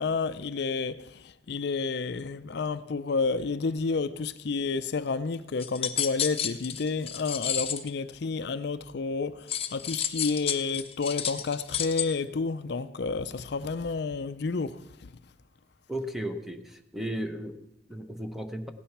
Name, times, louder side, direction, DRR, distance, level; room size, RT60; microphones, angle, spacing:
voice 1, 0.0-14.8, left 4 dB, 60° left, 0.5 m, -30 dB
sound 1, 5.6-7.9 9.5-12.0, left 9 dB, 30° left, 0.8 m, -31 dB
voice 2, 15.9-18.7, right 1 dB, ahead, 0.9 m, -35 dB
16.0 x 10.0 x 5.9 m
head